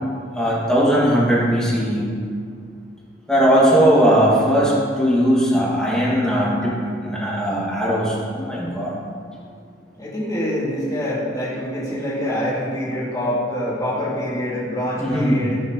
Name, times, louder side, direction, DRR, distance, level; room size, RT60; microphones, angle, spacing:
voice 1, 0.3-2.0 3.3-6.8 7.0-9.0 15.0-15.5, equal, 5° left, -7 dB, 2.3 m, -18 dB
voice 2, 10.0-15.6, equal, 20° left, -8 dB, 2.7 m, -25 dB
15.0 x 6.5 x 3.2 m, 2.2 s
head